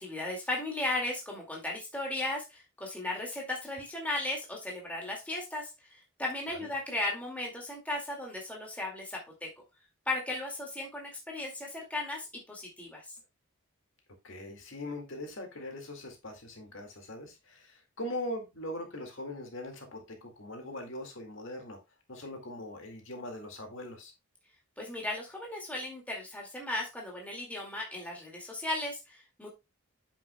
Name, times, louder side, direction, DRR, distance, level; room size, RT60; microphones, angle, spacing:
voice 1, 0.0-9.5 10.1-13.0 24.8-29.5, left 2 dB, 5° left, 2.2 m, -36 dB
voice 2, 14.2-21.8 22.1-24.1, left 1 dB, 60° left, 2.1 m, -41 dB
8.4 x 7.2 x 2.2 m
head